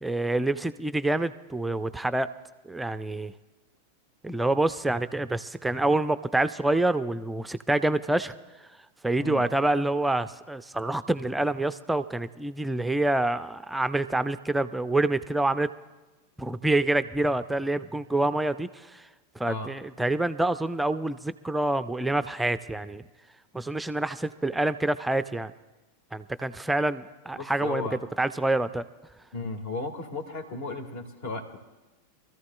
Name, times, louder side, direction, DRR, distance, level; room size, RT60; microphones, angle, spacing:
voice 1, 0.0-2.3 2.7-3.3 4.2-8.3 9.0-15.7 16.4-19.0 19.4-23.0 23.5-25.5 26.1-27.9 28.2-28.8, right 2 dB, 5° right, 12 dB, 0.5 m, -27 dB
voice 2, 27.3-28.0 29.3-31.6, left 3 dB, 50° left, 7 dB, 1.8 m, -35 dB
25.5 x 14.0 x 2.3 m, 1.1 s
figure-of-eight pair, 90°, 0 cm